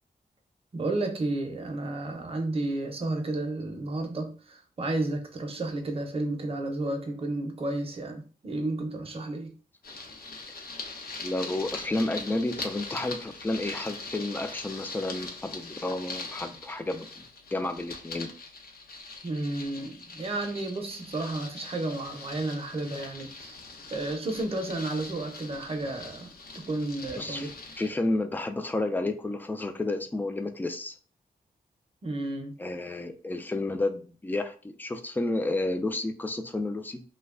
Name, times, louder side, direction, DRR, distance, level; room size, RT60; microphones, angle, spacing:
voice 1, 0.7-9.5 19.2-23.6 23.9-27.5 32.0-32.5, right 2 dB, 40° right, 4 dB, 0.6 m, -32 dB
sound 1, 9.8-27.9, left 3 dB, 80° left, 0.8 m, -42 dB
voice 2, 11.2-17.3 17.5-18.3 27.1-27.5 27.8-30.9 32.6-37.0, left 2 dB, 10° left, 7 dB, 0.3 m, -31 dB
3.1 x 2.2 x 3.6 m, 0.39 s
wide cardioid pair, 150°, 15 cm